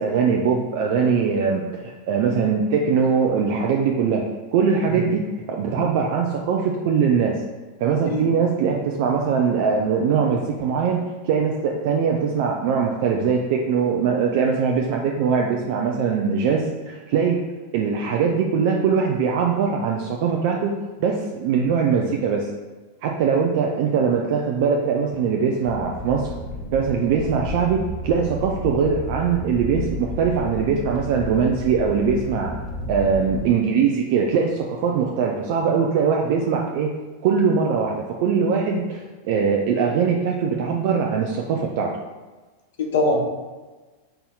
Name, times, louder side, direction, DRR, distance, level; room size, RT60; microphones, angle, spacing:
voice 1, 0.0-4.2 4.5-5.2 5.5-7.4 7.8-17.4 17.7-22.5 23.0-26.3 26.7-32.5 32.9-36.9 37.2-41.9, right 6 dB, 50° right, 0 dB, 0.4 m, -21 dB
sound 1, 25.6-33.4, left 2 dB, 10° left, 1.1 m, -32 dB
voice 2, 42.8-43.2, left 2 dB, 60° left, 0 dB, 1.0 m, -22 dB
5.4 x 4.1 x 2.3 m, 1.3 s
figure-of-eight pair, 90°, 0 cm